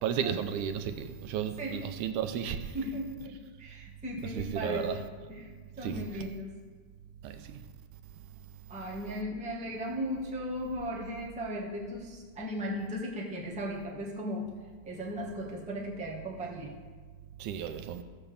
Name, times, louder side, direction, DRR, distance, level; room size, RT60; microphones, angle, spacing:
voice 1, 0.0-2.6 4.2-5.0 5.8-6.1 7.2-7.6 17.4-18.0, right 9 dB, 85° right, 2.1 m, -33 dB
voice 2, 2.7-5.0 5.3-5.5 5.8-6.5 8.7-14.5 14.8-16.7, equal, 5° right, 0.9 m, -36 dB
15.0 x 7.0 x 7.0 m
omnidirectional pair, 3.6 m